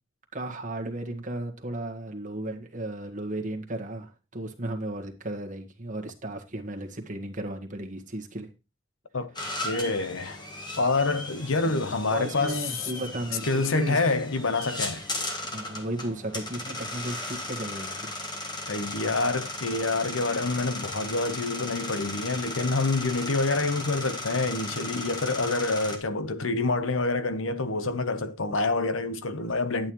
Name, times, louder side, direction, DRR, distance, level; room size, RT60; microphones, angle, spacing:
voice 1, 0.3-8.5 11.6-13.5 13.7-14.1 15.5-18.1, right 1 dB, 40° right, 1.6 m, -35 dB
sound 1, 9.4-26.0, left 2 dB, 20° left, 1.8 m, -36 dB
voice 2, 9.6-10.4 10.8-12.6 13.5-15.0 18.7-29.9, left 3 dB, 75° left, 1.0 m, -27 dB
11.0 x 8.8 x 3.1 m
head